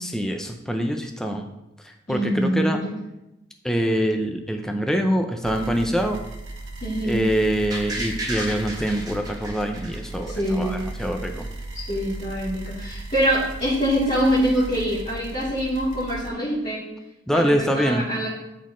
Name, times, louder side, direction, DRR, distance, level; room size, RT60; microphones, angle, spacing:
voice 1, 0.0-1.5 2.1-2.8 3.6-6.2 7.0-11.5 17.3-18.0, equal, 5° left, 4 dB, 0.5 m, -24 dB
voice 2, 2.1-2.9 6.8-7.2 10.3-10.9 11.7-16.8 17.3-18.3, equal, 35° left, -13 dB, 2.9 m, -24 dB
sound 1, 5.4-16.3, right 2 dB, 70° right, 0.9 m, -36 dB
sound 2, 7.7-10.6 11.0-11.1, right 1 dB, 20° right, 1.0 m, -33 dB
12.0 x 4.2 x 3.1 m, 0.91 s
head